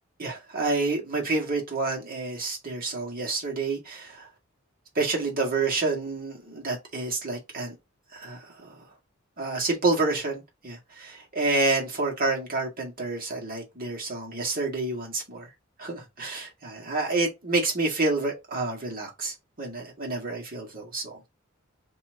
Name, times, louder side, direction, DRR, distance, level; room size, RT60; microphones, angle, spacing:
voice 1, 0.2-4.3 5.0-7.7 8.1-8.7 9.4-15.5 15.8-21.3, right 3 dB, 45° right, 1.9 m, -29 dB
5.7 x 3.1 x 2.9 m
head